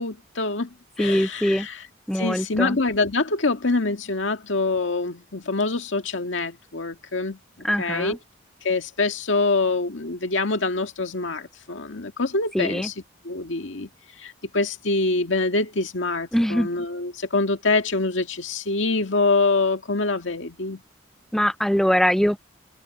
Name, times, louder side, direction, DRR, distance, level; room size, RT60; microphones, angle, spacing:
voice 1, 0.0-1.8 2.1-7.4 7.8-8.2 8.6-12.9 13.2-13.9 14.2-20.8, left 3 dB, 85° left, 1.8 m, -25 dB
voice 2, 1.0-1.7 2.1-2.8 7.6-8.2 12.5-12.9 16.3-16.7 21.3-22.4, equal, ahead, 0.4 m, -22 dB
head